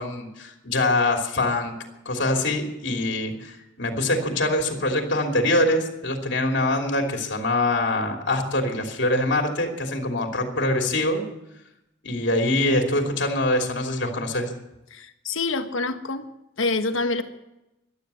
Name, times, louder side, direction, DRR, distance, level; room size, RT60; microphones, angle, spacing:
voice 1, 0.0-1.7 2.0-11.2 12.0-14.5, left 1 dB, 60° left, 3 dB, 3.0 m, -24 dB
voice 2, 14.9-16.3 16.6-17.2, left 3 dB, 80° left, 8 dB, 1.4 m, -26 dB
14.0 x 12.0 x 8.2 m, 0.90 s
head